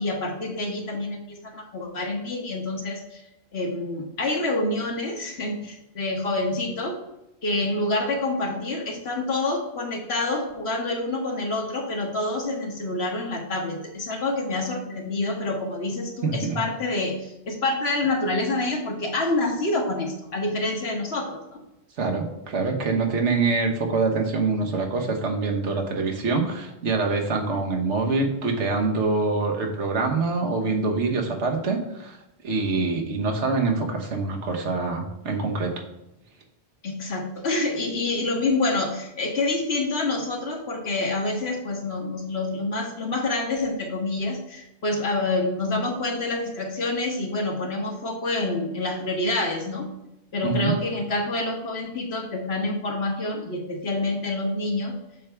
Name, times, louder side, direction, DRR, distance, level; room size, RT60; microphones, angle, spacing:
voice 1, 0.0-3.2 3.5-7.0 7.4-21.4 36.8-49.9 50.3-54.9, left 2 dB, 65° left, 1 dB, 1.5 m, -27 dB
voice 2, 16.2-16.6 22.0-32.2 32.4-35.7 50.4-50.7, right 3 dB, 90° right, 2 dB, 1.4 m, -25 dB
7.3 x 3.4 x 5.7 m, 0.92 s
omnidirectional pair, 1.1 m